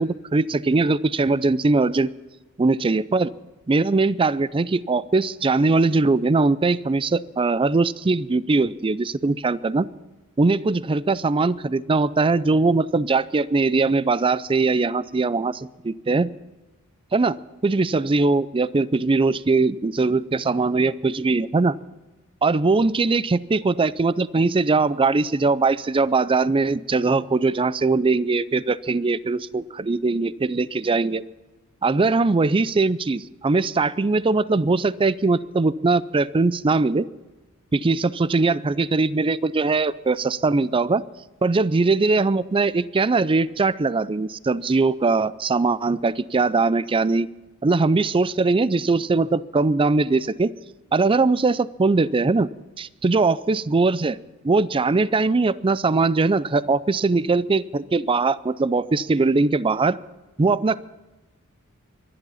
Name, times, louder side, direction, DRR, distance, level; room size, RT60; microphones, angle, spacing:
voice 1, 0.0-2.1 2.6-3.3 3.7-9.9 10.4-16.3 17.1-17.4 17.6-21.8 22.4-31.2 31.8-37.1 37.7-41.0 41.4-47.3 47.6-50.5 50.9-52.5 52.8-54.2 54.4-60.0 60.4-60.8, right 3 dB, 25° right, 19 dB, 0.4 m, -21 dB
23.5 x 11.0 x 5.6 m, 1.1 s
head